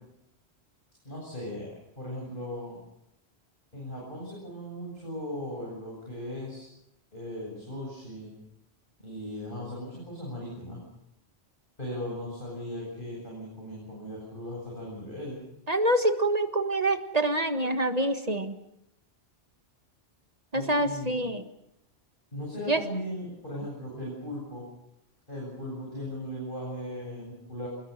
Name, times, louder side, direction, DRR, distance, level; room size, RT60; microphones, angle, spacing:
voice 1, 1.0-1.7 2.0-2.8 3.7-6.7 7.1-8.3 9.0-10.8 11.8-15.4 20.5-21.1 22.3-24.6 25.3-27.7, left 1 dB, 50° left, -4 dB, 8.2 m, -38 dB
voice 2, 15.7-18.6 20.5-21.4 22.7-22.8, right 1 dB, 35° right, 8 dB, 1.7 m, -26 dB
27.0 x 21.0 x 6.7 m, 0.80 s
omnidirectional pair, 1.1 m